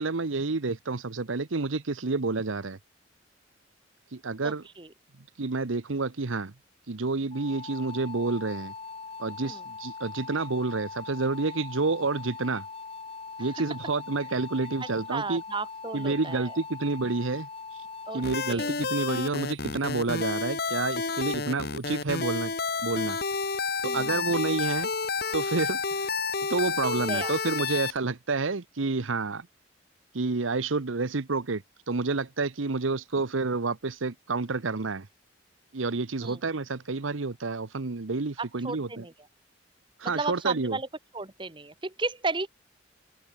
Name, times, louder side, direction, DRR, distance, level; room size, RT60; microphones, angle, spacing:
voice 1, 0.0-2.8 4.1-4.7 5.4-6.5 6.9-8.7 9.2-12.6 13.4-15.4 15.9-17.5 18.1-22.5 22.8-23.2 23.8-24.9 25.3-26.2 26.5-29.5 30.1-35.1 35.7-39.0 40.0-40.8, right 3 dB, 85° right, 1.0 m, -29 dB
voice 2, 4.4-4.9 9.4-9.6 15.1-16.5 18.1-18.2 18.5-18.7 23.8-24.2 27.1-27.3 36.2-36.4 38.4-39.1 40.0-40.9 41.1-42.5, right 3 dB, 25° right, 1.5 m, -34 dB
sound 1, 7.3-18.5, left 4 dB, 30° left, 1.0 m, -41 dB
sound 2, 18.2-28.0, left 4 dB, 50° left, 1.7 m, -30 dB
open air
head